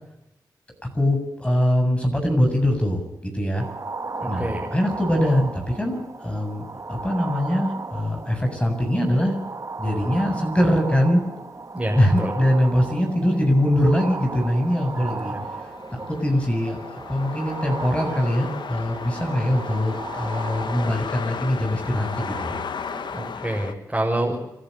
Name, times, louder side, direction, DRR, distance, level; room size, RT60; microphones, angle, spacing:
voice 1, 0.9-3.6 4.3-9.4 9.8-11.2 11.9-15.3 15.9-22.5, equal, 15° left, 3 dB, 7.6 m, -22 dB
sound 1, 3.6-23.4, right 3 dB, 45° right, 2.2 m, -36 dB
voice 2, 4.2-4.7 11.7-12.3 15.0-15.4 23.1-24.4, right 1 dB, 15° right, -3 dB, 7.0 m, -27 dB
sound 2, 14.4-23.7, left 6 dB, 70° left, 1.4 m, -35 dB
30.0 x 12.0 x 8.1 m, 0.88 s
cardioid pair, 45°, 8 cm